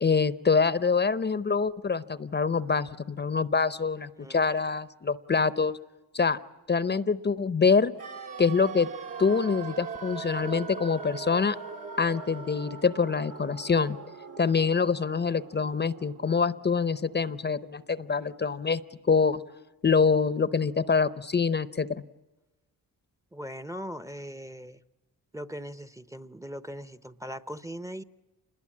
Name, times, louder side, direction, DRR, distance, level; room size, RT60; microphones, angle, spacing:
voice 1, 0.0-5.8 6.1-6.4 6.7-7.9 8.4-8.9 9.2-11.6 12.0-14.0 14.4-18.8 19.1-19.4 19.8-22.0, left 5 dB, 30° left, 16 dB, 0.8 m, -25 dB
sound 1, 8.0-17.9 18.2-18.3, right 5 dB, 65° right, 2.0 m, -41 dB
voice 2, 23.3-24.8 25.3-28.0, equal, 10° right, 13 dB, 0.8 m, -39 dB
27.5 x 21.0 x 8.6 m, 1.1 s
cardioid pair, 90°, 36 cm